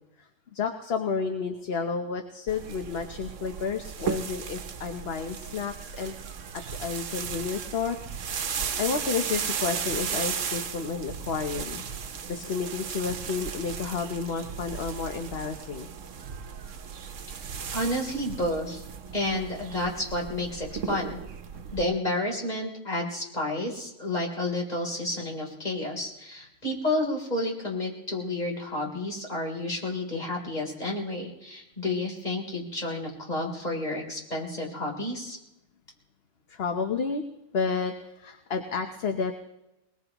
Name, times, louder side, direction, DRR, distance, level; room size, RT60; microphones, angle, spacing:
voice 1, 0.2-6.1 6.8-8.0 8.8-11.8 12.3-15.9 36.5-37.2 37.5-39.3, left 5 dB, 55° left, 5 dB, 1.1 m, -31 dB
sound 1, 2.5-21.8, right 7 dB, 75° right, 1.2 m, -36 dB
voice 2, 17.7-18.8 19.1-21.2 21.7-35.4, left 1 dB, 35° left, -1 dB, 3.7 m, -30 dB
22.5 x 20.5 x 3.0 m, 0.92 s
omnidirectional pair, 1.3 m